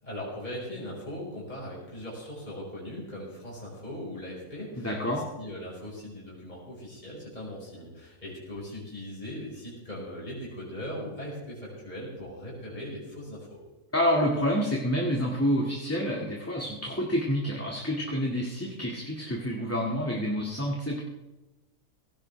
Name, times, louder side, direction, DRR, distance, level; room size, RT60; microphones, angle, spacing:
voice 1, 0.0-13.5, left 1 dB, 30° left, -5 dB, 5.2 m, -39 dB
voice 2, 4.7-5.2 13.9-21.0, equal, 10° left, -2 dB, 2.0 m, -28 dB
18.0 x 16.0 x 3.4 m, 1.1 s
omnidirectional pair, 1.5 m